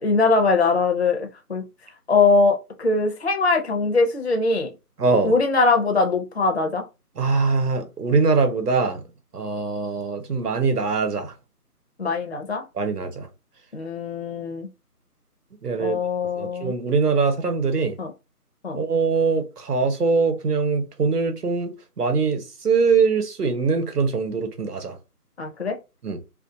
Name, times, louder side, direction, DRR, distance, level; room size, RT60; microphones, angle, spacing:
voice 1, 0.0-1.6 2.1-4.7 5.2-6.8 12.0-12.6 13.7-14.7 15.8-16.7 18.0-18.1 18.6-18.8 25.4-25.8, left 3 dB, 45° left, 0.4 m, -21 dB
voice 2, 5.0-5.3 7.2-9.0 9.3-11.3 12.8-13.3 15.6-16.0 16.4-18.0 18.7-21.7 22.0-24.9 26.0-26.2, right 4 dB, 75° right, 0.9 m, -22 dB
2.4 x 2.3 x 2.5 m
figure-of-eight pair, 165°, 47 cm